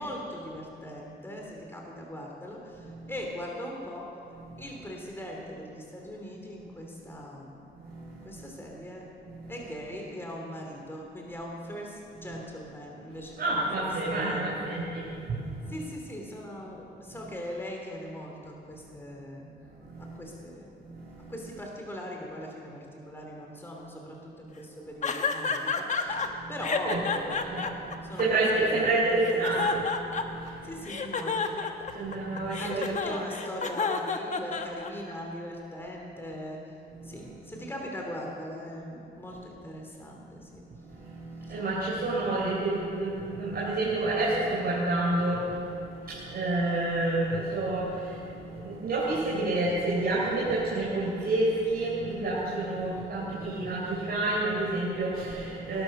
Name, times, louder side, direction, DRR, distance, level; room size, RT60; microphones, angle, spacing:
voice 1, 0.0-4.1 4.6-7.6 8.0-9.1 9.5-14.6 15.7-19.5 20.0-20.9 21.3-27.7 28.0-29.8 30.6-31.6 32.6-36.6 37.0-40.6 41.5-41.6 52.9-53.3, left 1 dB, 10° left, -1 dB, 2.8 m, -40 dB
voice 2, 2.8-3.3 4.3-4.8 7.8-8.4 9.2-9.7 12.1-12.4 13.1-15.9 17.1-17.3 19.8-20.2 20.8-21.5 26.1-30.8 31.9-33.2 33.5-33.6 36.9-37.7 39.3-39.4 40.8-55.8, right 2 dB, 50° right, -7 dB, 4.3 m, -30 dB
sound 1, 25.0-26.3 26.6-28.8 29.2-30.5 30.8-35.1, left 5 dB, 40° left, 1.1 m, -30 dB
19.0 x 11.5 x 6.5 m, 2.6 s
cardioid pair, 125°, 20 cm